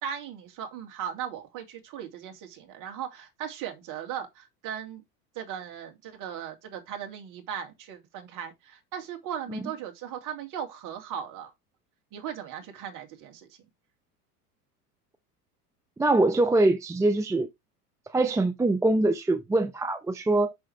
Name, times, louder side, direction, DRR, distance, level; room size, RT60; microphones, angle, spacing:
voice 1, 0.0-5.0 5.3-11.5 12.1-13.6, right 9 dB, 40° right, 2.4 m, -38 dB
voice 2, 16.0-17.5 18.1-20.5, right 2 dB, 5° right, 0.5 m, -23 dB
6.2 x 6.1 x 3.3 m
hypercardioid pair, 85°, 46 cm